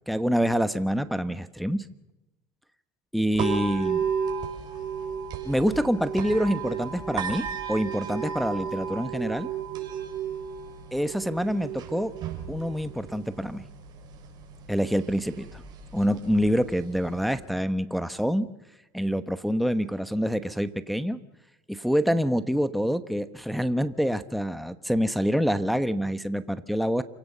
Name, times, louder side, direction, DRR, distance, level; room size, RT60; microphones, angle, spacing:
voice 1, 0.1-1.8 3.1-4.0 5.4-9.5 10.9-12.1 12.5-13.6 14.7-15.6 15.9-18.5 18.9-21.2 21.7-27.0, equal, ahead, 11 dB, 1.1 m, -26 dB
sound 1, 3.3-17.3, right 7 dB, 50° right, 5.5 m, -34 dB
28.0 x 17.0 x 6.8 m, 0.95 s
supercardioid pair, 105°, 9 cm